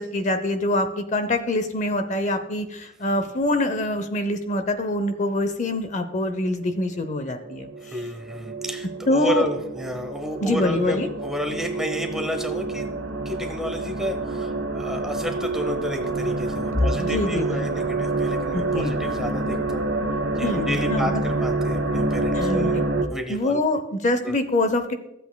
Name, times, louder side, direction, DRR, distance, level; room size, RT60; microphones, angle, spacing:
voice 1, 0.0-7.7 9.1-9.4 10.4-11.1 17.0-17.8 18.5-18.9 20.4-21.2 22.3-22.9 23.3-24.9, left 1 dB, 35° left, 8 dB, 0.6 m, -25 dB
sound 1, 6.3-23.1, right 2 dB, 70° right, 1.1 m, -27 dB
voice 2, 7.8-19.9 20.4-23.6 24.2-24.4, left 1 dB, ahead, 5 dB, 0.7 m, -31 dB
14.5 x 8.1 x 2.2 m, 0.89 s
head